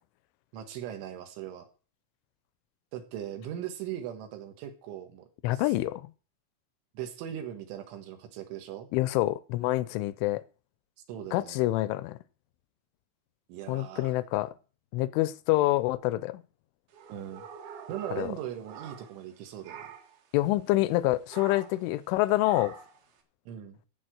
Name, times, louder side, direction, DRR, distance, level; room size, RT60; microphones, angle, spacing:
voice 1, 0.5-1.7 2.9-5.3 5.5-5.7 7.0-8.9 11.1-11.6 13.5-14.1 17.1-17.5 17.9-19.9 23.5-23.8, right 10 dB, 80° right, 4.0 m, -39 dB
voice 2, 5.4-6.1 8.9-10.4 11.3-12.2 13.7-14.5 14.9-16.4 18.1-18.3 20.3-22.8, left 17 dB, 85° left, 3.2 m, -27 dB
sound 1, 16.9-19.3 19.6-20.2 21.3-21.9 22.4-23.0, right 7 dB, 60° right, 3.3 m, -45 dB
14.5 x 4.9 x 7.9 m
omnidirectional pair, 5.4 m